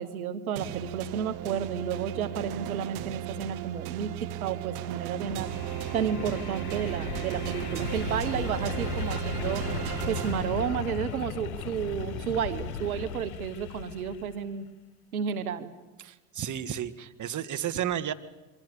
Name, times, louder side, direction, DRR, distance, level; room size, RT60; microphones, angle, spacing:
voice 1, 0.0-5.5 5.9-9.7 10.1-14.7 15.1-15.7, right 8 dB, 90° right, 11 dB, 1.4 m, -32 dB
sound 1, 0.6-11.2, right 15 dB, 60° right, 1.4 m, -36 dB
sound 2, 5.3-14.4, left 11 dB, 75° left, 1.7 m, -37 dB
sound 3, 5.3-13.2, left 2 dB, 5° left, 5.4 m, -43 dB
voice 2, 16.0-18.1, right 10 dB, 45° right, 11 dB, 1.7 m, -32 dB
28.0 x 24.5 x 6.9 m, 1.1 s
hypercardioid pair, 70°, 42 cm